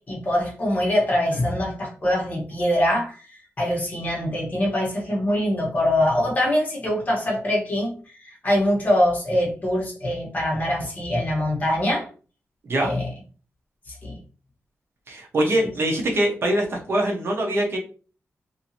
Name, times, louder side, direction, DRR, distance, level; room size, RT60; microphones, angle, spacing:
voice 1, 0.1-12.1 12.8-13.1 13.9-14.2 15.6-15.7, left 1 dB, 35° left, -2 dB, 1.1 m, -23 dB
voice 2, 15.1-17.8, right 1 dB, 55° right, 0 dB, 0.8 m, -23 dB
2.8 x 2.5 x 2.8 m, 0.38 s
wide cardioid pair, 160°, 5 cm